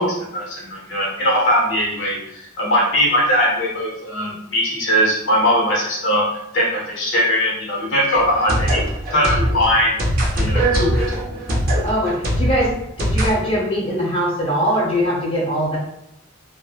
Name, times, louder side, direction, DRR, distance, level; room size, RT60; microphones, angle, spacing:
voice 1, 0.0-6.3 6.5-8.8 9.1-10.0 10.3-11.1, equal, 70° left, -3 dB, 0.8 m, -20 dB
sound 1, 8.1-13.3, right 1 dB, 45° right, 0.6 m, -21 dB
voice 2, 11.8-12.7 13.0-15.8, equal, 30° left, -5 dB, 0.8 m, -21 dB
3.0 x 2.0 x 2.3 m, 0.81 s
head